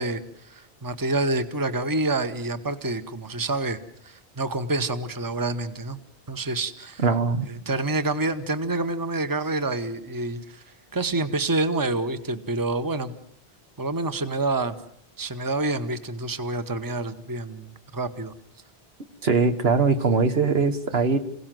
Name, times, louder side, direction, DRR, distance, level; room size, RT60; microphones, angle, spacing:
voice 1, 0.0-3.8 4.0-6.0 6.3-7.0 7.5-10.6 10.9-13.1 13.8-14.8 15.2-18.3, right 2 dB, 20° right, 10 dB, 1.1 m, -27 dB
voice 2, 7.0-7.5 19.2-21.2, right 4 dB, 75° right, 8 dB, 1.7 m, -21 dB
27.5 x 17.0 x 7.7 m, 0.69 s
omnidirectional pair, 1.1 m